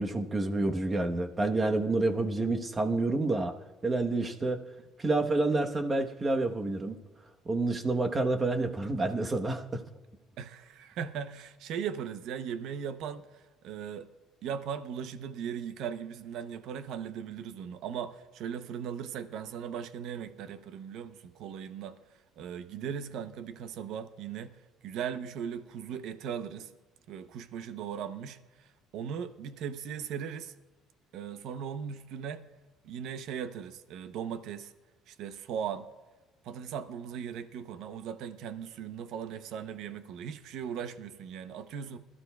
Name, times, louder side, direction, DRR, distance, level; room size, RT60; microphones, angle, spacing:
voice 1, 0.0-3.5 3.8-4.6 5.0-7.0 7.4-9.8, right 2 dB, 25° right, 1.1 m, -28 dB
voice 2, 10.4-14.1 14.4-22.0 22.4-24.5 24.8-26.7 27.1-30.5 31.1-32.5 32.8-34.7 35.1-35.9 36.4-42.0, right 8 dB, 70° right, 0.7 m, -38 dB
21.0 x 12.5 x 2.3 m
cardioid pair, 115°, 0 cm